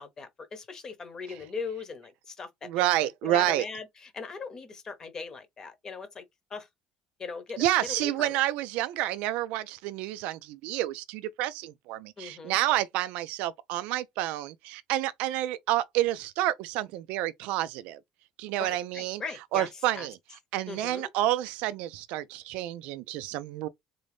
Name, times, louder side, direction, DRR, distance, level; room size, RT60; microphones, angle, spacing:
voice 1, 0.0-2.9 3.2-6.2 6.5-6.7 7.2-8.4 12.2-12.6 18.6-19.7 19.9-20.1 20.7-21.1, left 5 dB, 30° left, 0.9 m, -39 dB
voice 2, 2.6-3.6 7.6-18.0 18.4-19.2 19.5-20.2 20.5-23.7, right 14 dB, 85° right, 0.3 m, -29 dB
3.7 x 2.6 x 3.2 m
cardioid pair, 145°, 2 cm